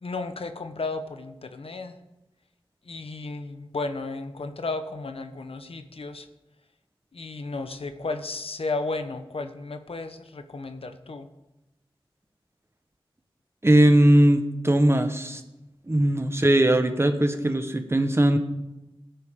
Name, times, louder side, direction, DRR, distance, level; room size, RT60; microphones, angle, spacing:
voice 1, 0.0-2.0 2.9-6.3 7.1-11.3, left 3 dB, 75° left, 8 dB, 1.0 m, -33 dB
voice 2, 13.6-15.4 15.9-18.4, right 1 dB, 25° right, 7 dB, 1.2 m, -19 dB
17.0 x 10.5 x 3.7 m, 0.96 s
wide cardioid pair, 50°, 10 cm